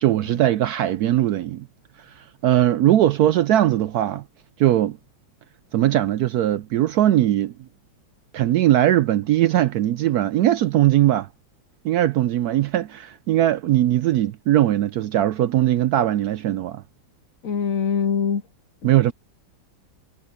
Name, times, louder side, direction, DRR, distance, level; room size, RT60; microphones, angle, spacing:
voice 1, 0.0-1.7 2.0-4.2 4.6-5.0 5.7-7.5 8.3-11.3 11.8-16.8 18.8-19.1, right 13 dB, 75° right, 0.9 m, -20 dB
voice 2, 17.4-18.4, left 6 dB, 55° left, 1.0 m, -23 dB
omnidirectional pair, 2.0 m